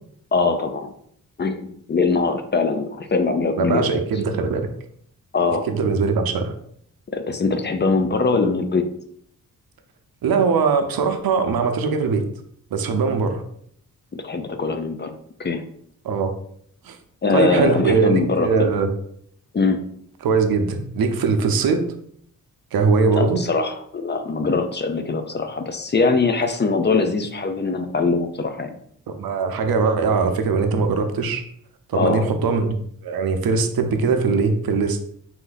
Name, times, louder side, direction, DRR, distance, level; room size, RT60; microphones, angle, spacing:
voice 1, 0.3-0.9 1.4-3.9 5.3-5.7 7.1-8.8 14.1-15.1 15.4-15.6 17.2-18.7 19.5-19.8 23.1-28.8 31.9-32.3, left 4 dB, 30° left, 7 dB, 0.4 m, -22 dB
voice 2, 3.6-4.7 5.7-6.5 10.2-12.2 12.7-13.4 16.0-16.3 16.8-17.0 17.3-18.9 20.2-21.8 22.7-23.4 29.1-31.4 31.9-35.0, right 4 dB, 85° right, 6 dB, 0.7 m, -21 dB
4.3 x 2.7 x 3.9 m, 0.67 s
wide cardioid pair, 110°, 35 cm